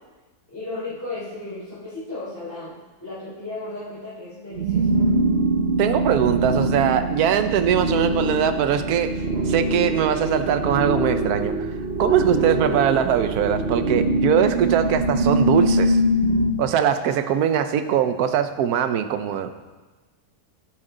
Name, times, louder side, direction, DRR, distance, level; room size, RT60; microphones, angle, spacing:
voice 1, 0.5-4.9 12.2-12.5, left 2 dB, 10° left, -12 dB, 3.5 m, -34 dB
sound 1, 4.5-16.5, right 1 dB, 50° right, 0.8 m, -23 dB
voice 2, 5.8-9.1 9.5-11.7 12.0-16.0 16.6-19.5, right 9 dB, 70° right, 10 dB, 1.1 m, -21 dB
11.0 x 10.5 x 3.9 m, 1.2 s
omnidirectional pair, 1.8 m